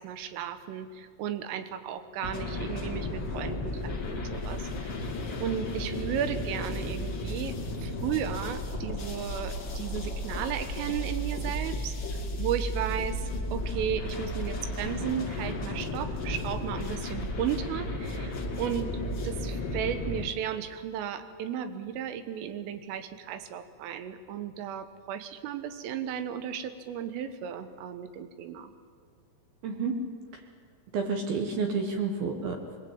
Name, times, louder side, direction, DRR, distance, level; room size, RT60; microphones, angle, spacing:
voice 1, 0.0-4.9 5.4-7.6 7.8-13.2 13.5-18.9 19.2-28.7, right 9 dB, 80° right, 10 dB, 3.7 m, -34 dB
sound 1, 2.2-20.3, left 1 dB, 35° left, 2.0 m, -34 dB
voice 2, 29.6-29.9 30.9-32.8, right 4 dB, 65° right, 3 dB, 2.7 m, -30 dB
22.5 x 21.5 x 8.7 m, 2.1 s
omnidirectional pair, 5.9 m